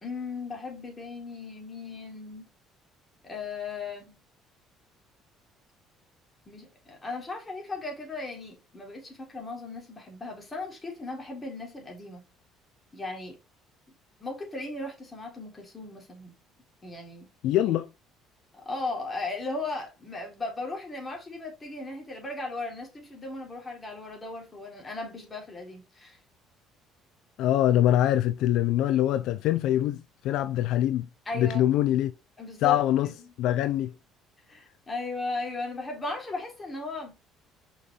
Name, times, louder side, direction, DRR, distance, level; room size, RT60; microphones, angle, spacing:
voice 1, 0.0-2.5 3.2-4.2 6.5-12.2 12.9-13.4 14.2-16.3 16.8-17.3 18.5-26.2 31.3-31.7 32.4-33.1 34.5-37.2, left 3 dB, 20° left, 3.5 m, -37 dB
voice 2, 17.4-17.9 27.4-31.1 31.3-32.1 32.6-33.1 33.4-33.9, left 12 dB, 75° left, 0.5 m, -24 dB
6.2 x 5.4 x 3.4 m
cardioid pair, 120°, 0 cm